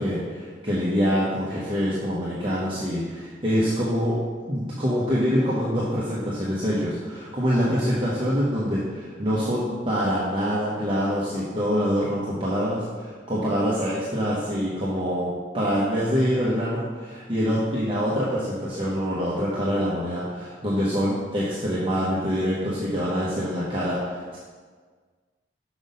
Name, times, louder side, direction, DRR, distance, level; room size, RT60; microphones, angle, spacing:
voice 1, 0.0-4.2 4.5-24.4, equal, 30° right, -8 dB, 1.0 m, -25 dB
6.1 x 5.0 x 5.4 m, 1.5 s
head